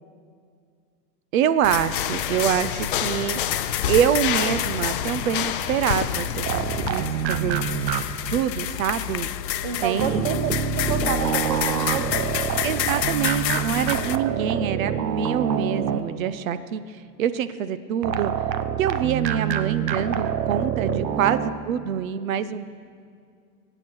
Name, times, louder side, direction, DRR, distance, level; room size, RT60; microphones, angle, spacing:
voice 1, 1.3-3.4 3.9-7.6 8.3-9.3 9.8-10.3 12.6-16.8 17.2-18.3 18.8-21.4 21.7-22.7, right 9 dB, 55° right, 14 dB, 0.8 m, -25 dB
sound 1, 1.6-14.2, left 12 dB, 85° left, 0.9 m, -29 dB
sound 2, 1.9-6.9, left 10 dB, 35° left, 0.5 m, -29 dB
sound 3, 6.4-8.4 10.0-16.4 18.0-21.5, right 9 dB, 80° right, 1.1 m, -26 dB
voice 2, 9.6-12.3 14.0-14.1 20.8-21.5, right 6 dB, 25° right, 9 dB, 0.9 m, -30 dB
23.0 x 9.0 x 6.3 m, 2.3 s
supercardioid pair, 170°, 50 cm